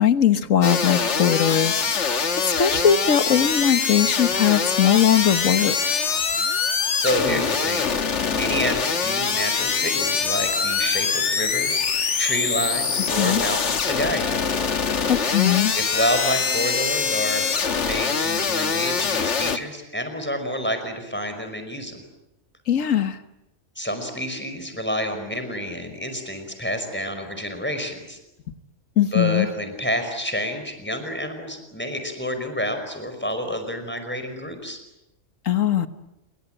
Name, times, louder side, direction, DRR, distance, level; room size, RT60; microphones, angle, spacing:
voice 1, 0.0-5.8 13.2-13.4 15.1-15.8 22.7-23.2 29.0-29.5 35.5-35.9, left 9 dB, 85° left, 11 dB, 1.6 m, -20 dB
sound 1, 0.6-19.6, left 5 dB, 65° left, 1.7 m, -24 dB
voice 2, 7.0-7.9 8.3-14.4 15.8-17.5 17.8-22.0 23.8-28.2 29.1-34.8, equal, 10° left, 7 dB, 5.2 m, -28 dB
28.0 x 23.5 x 8.9 m, 0.91 s
omnidirectional pair, 1.3 m